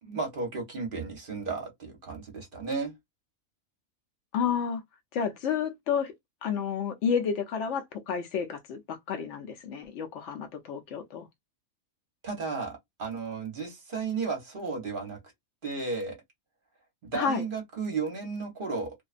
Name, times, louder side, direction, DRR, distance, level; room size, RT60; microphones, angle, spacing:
voice 1, 0.0-2.9 12.2-15.2 15.6-16.2 17.0-18.9, right 4 dB, 45° right, 0.8 m, -34 dB
voice 2, 4.3-4.8 5.1-6.1 6.4-11.3 17.1-17.4, left 7 dB, 65° left, 0.8 m, -30 dB
2.5 x 2.1 x 2.4 m
omnidirectional pair, 1.5 m